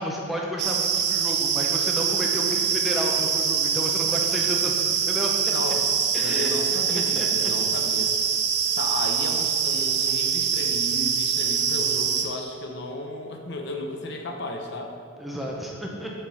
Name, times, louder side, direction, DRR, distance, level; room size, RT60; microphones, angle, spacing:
voice 1, 0.0-5.3 6.1-7.5 15.2-16.1, equal, ahead, -2 dB, 0.7 m, -32 dB
sound 1, 0.6-12.2, right 7 dB, 50° right, 0.6 m, -24 dB
voice 2, 5.4-8.1 8.8-14.9, left 1 dB, 55° left, 3 dB, 0.7 m, -34 dB
7.7 x 4.3 x 5.6 m, 2.3 s
head